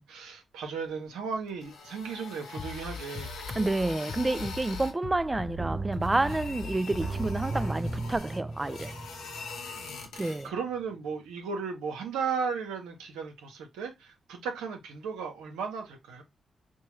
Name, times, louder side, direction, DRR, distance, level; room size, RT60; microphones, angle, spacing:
voice 1, 0.0-3.3 9.5-16.2, right 5 dB, 90° right, 0.9 m, -36 dB
sound 1, 1.5-5.0 5.9-10.5, left 4 dB, 85° left, 0.7 m, -43 dB
Bass drum, 2.6-8.2, left 3 dB, 50° left, 0.5 m, -40 dB
voice 2, 3.6-8.9 10.2-10.5, right 2 dB, 25° right, 0.3 m, -29 dB
sound 2, 5.6-10.3 10.6-10.7, right 3 dB, 50° right, 0.8 m, -36 dB
4.5 x 2.2 x 3.1 m
supercardioid pair, 40°, 0 cm